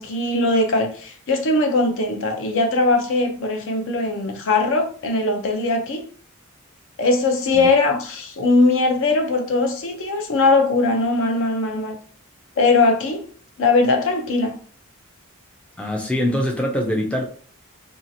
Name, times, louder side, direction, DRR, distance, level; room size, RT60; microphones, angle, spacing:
voice 1, 0.0-6.0 7.0-11.9 12.6-13.3 13.6-14.6, left 3 dB, 60° left, 0.6 m, -20 dB
voice 2, 15.8-17.2, left 1 dB, 5° left, 0.4 m, -23 dB
2.8 x 2.4 x 2.6 m
head